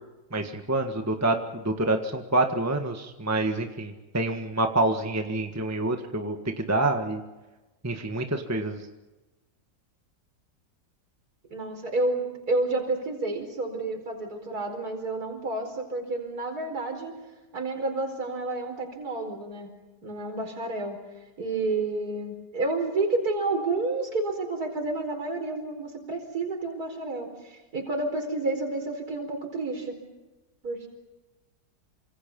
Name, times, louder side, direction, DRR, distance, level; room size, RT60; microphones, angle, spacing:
voice 1, 0.3-1.4 1.6-7.2 7.8-8.8, right 2 dB, 10° right, 5 dB, 1.5 m, -27 dB
voice 2, 11.5-17.1 17.5-19.7 20.0-21.0 21.4-30.0 30.6-30.9, right 2 dB, 55° right, 3 dB, 5.1 m, -30 dB
28.0 x 26.5 x 5.5 m, 1.1 s
omnidirectional pair, 1.9 m